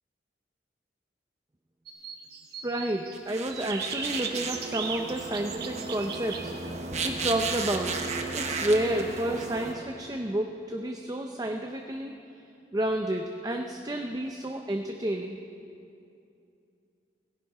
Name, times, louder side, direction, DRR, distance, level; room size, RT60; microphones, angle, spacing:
sound 1, 1.9-3.2 3.5-6.5, right 6 dB, 60° right, 1.2 m, -37 dB
voice 1, 2.6-6.5 7.0-8.0 8.3-12.1 12.7-15.4, right 1 dB, 20° right, 3 dB, 0.6 m, -30 dB
sound 2, 3.1-9.7, right 3 dB, 40° right, 1.1 m, -34 dB
17.5 x 16.0 x 4.8 m, 2.6 s
head